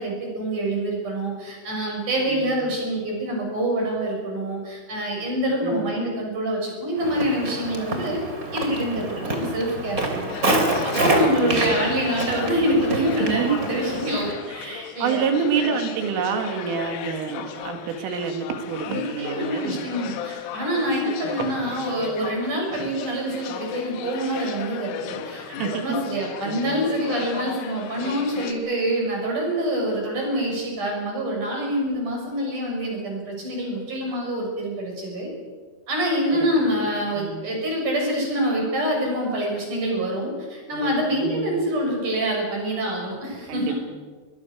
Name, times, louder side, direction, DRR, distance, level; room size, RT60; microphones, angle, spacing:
voice 1, 0.0-8.2 8.5-10.3 10.8-15.3 18.9-35.3 35.9-43.8, right 1 dB, 40° right, 0 dB, 7.7 m, -26 dB
voice 2, 2.3-2.7 5.6-5.9 11.4-12.0 13.2-13.6 14.1-14.2 15.0-19.8 21.4-22.2 25.6-26.0 26.4-26.8 36.4-36.5 37.2-37.4 40.7-40.9 41.2-41.6 43.5-43.8, right 6 dB, 80° right, 5 dB, 4.8 m, -28 dB
Walk footsteps, 7.0-14.3, right 2 dB, 25° right, 2.5 m, -27 dB
sound 1, 10.3-28.5, left 9 dB, 80° left, 3.9 m, -35 dB
24.0 x 21.0 x 6.5 m, 1.5 s
omnidirectional pair, 5.7 m